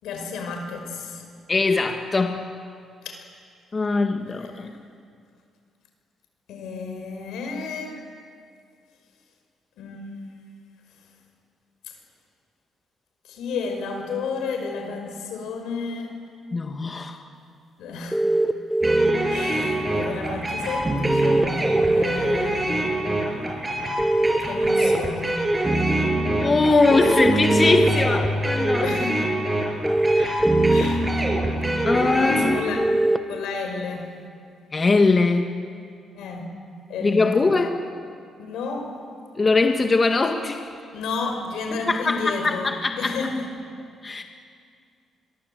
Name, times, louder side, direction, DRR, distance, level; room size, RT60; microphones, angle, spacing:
voice 1, 0.0-1.3 3.0-3.2 4.2-4.8 6.5-8.0 9.8-10.0 11.8-12.0 13.2-16.1 17.8-18.3 19.3-23.8 24.4-25.4 28.8-29.1 30.7-31.1 32.1-32.8 33.3-34.1 36.1-36.5 36.9-37.4 38.4-39.0 40.9-43.5, left 4 dB, 85° left, 4 dB, 5.4 m, -32 dB
voice 2, 1.5-2.4 3.7-4.7 16.5-17.2 26.4-28.8 30.2-30.5 31.9-32.6 34.7-35.5 37.0-37.9 39.3-40.8 41.7-43.2 44.0-44.2, left 3 dB, 30° left, 5 dB, 1.7 m, -21 dB
sound 1, 18.1-19.1 21.0-22.0 24.0-25.0 26.9-27.9 29.8-30.8 32.8-33.2, right 2 dB, ahead, 0.9 m, -20 dB
sound 2, 18.8-32.6, right 1 dB, 20° right, 6.7 m, -25 dB
27.5 x 22.5 x 8.1 m, 2.3 s
cardioid pair, 90°, 0 cm